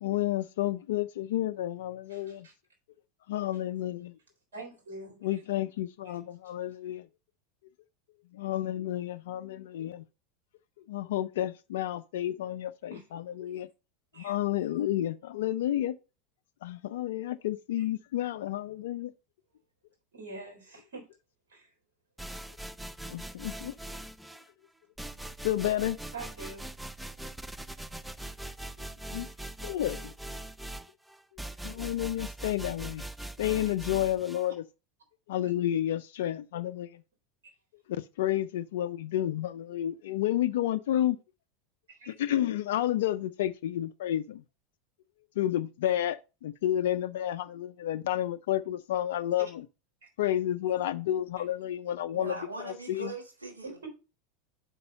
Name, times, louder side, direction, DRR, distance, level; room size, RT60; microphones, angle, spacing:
voice 1, 0.0-2.5 3.3-4.2 5.2-7.1 8.3-10.0 10.9-13.7 14.2-15.9 16.6-19.1 23.1-23.7 25.4-26.0 29.1-29.3 29.6-30.1 31.6-33.0 33.4-34.6 35.3-37.0 37.9-41.2 42.1-44.4 45.4-49.7 50.2-53.1, left 12 dB, 65° left, 0.3 m, -31 dB
voice 2, 2.1-2.5 4.5-5.4 12.9-13.0 14.1-14.3 20.1-21.1 21.5-21.7 26.1-26.8 33.6-33.7 37.4-37.5 41.9-42.1 50.0-50.1 53.8-53.9, right 3 dB, 70° right, 3.6 m, -45 dB
sound 1, 22.2-24.5 25.0-34.5, right 1 dB, 5° right, 0.4 m, -41 dB
voice 3, 52.1-53.9, right 3 dB, 90° right, 3.0 m, -41 dB
5.4 x 5.2 x 5.3 m
figure-of-eight pair, 85°, 0 cm